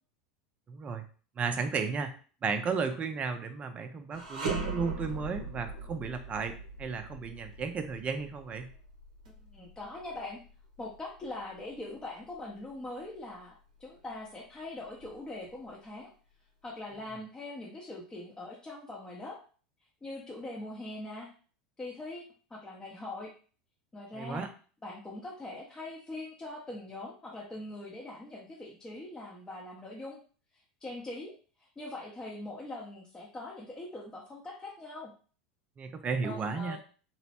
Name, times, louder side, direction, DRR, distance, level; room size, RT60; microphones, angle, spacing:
voice 1, 0.7-1.0 1.4-2.1 2.4-6.5 6.8-8.7 24.2-24.5 35.8-36.8, right 5 dB, 30° right, 8 dB, 0.4 m, -34 dB
sound 1, 4.1-13.4 13.8-14.0 14.8-15.7, right 4 dB, 85° right, 0.7 m, -40 dB
voice 2, 9.4-10.4 10.8-16.1 16.6-19.4 20.0-21.3 21.8-22.2 22.5-23.3 23.9-24.5 24.8-30.2 30.8-35.1 36.2-36.8, left 2 dB, 15° left, -3 dB, 0.6 m, -42 dB
3.0 x 2.1 x 2.8 m, 0.40 s
hypercardioid pair, 90°, 4 cm